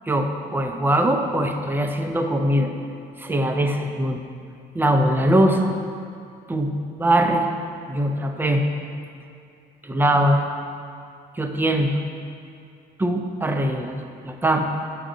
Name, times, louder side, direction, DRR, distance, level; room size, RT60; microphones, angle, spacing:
voice 1, 0.1-2.7 3.2-4.2 4.7-5.7 6.5-6.7 7.0-7.5 7.9-8.6 9.8-10.4 11.4-11.9 13.0-14.0 14.2-14.6, right 1 dB, 10° right, 4 dB, 0.5 m, -21 dB
6.7 x 3.8 x 5.0 m, 2.5 s
cardioid pair, 110°, 17 cm